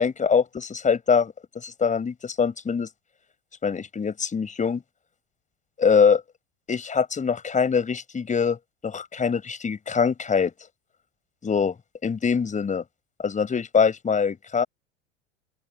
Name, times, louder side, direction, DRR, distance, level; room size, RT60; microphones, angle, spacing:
voice 1, 0.0-2.9 3.6-4.8 5.8-6.2 6.7-8.6 8.8-10.5 11.4-11.8 12.0-12.8 13.2-14.6, left 6 dB, 20° left, 5.4 m, -23 dB
open air
figure-of-eight pair, 80°, 35 cm